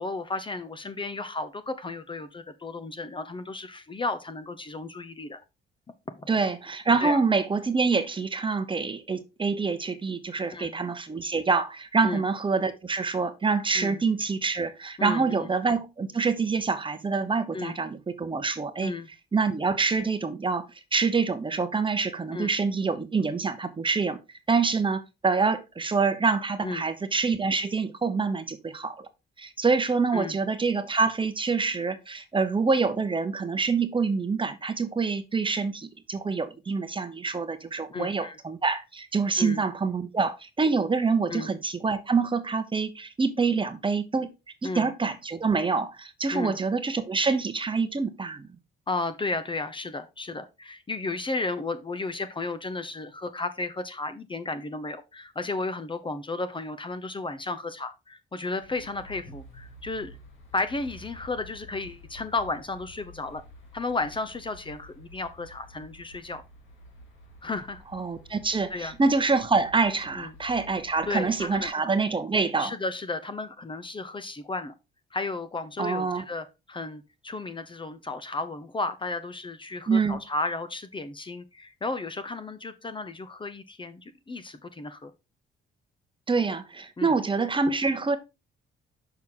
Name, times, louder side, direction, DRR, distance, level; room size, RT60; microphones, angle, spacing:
voice 1, 0.0-5.4 6.1-6.3 7.0-7.2 10.5-10.7 12.0-12.2 13.7-14.0 15.0-15.5 17.5-17.8 18.8-19.1 22.3-22.5 26.6-26.9 30.1-30.4 37.9-38.4 39.4-39.6 41.3-41.5 44.6-44.9 46.3-46.6 48.9-60.1 60.5-63.4 63.7-66.4 67.4-67.8 68.7-68.9 70.1-70.3 71.1-71.7 72.6-74.7 75.1-85.1 87.0-87.2, left 3 dB, 25° left, 0.8 m, -33 dB
voice 2, 6.3-18.9 19.3-20.6 20.9-24.2 24.5-29.1 29.4-44.3 44.6-48.5 67.9-72.7 75.8-76.2 79.9-80.2 86.3-88.2, right 4 dB, 25° right, 1.0 m, -26 dB
sound 1, 58.6-71.7, left 1 dB, 75° left, 2.6 m, -50 dB
6.2 x 5.8 x 3.9 m
cardioid pair, 90°, 20 cm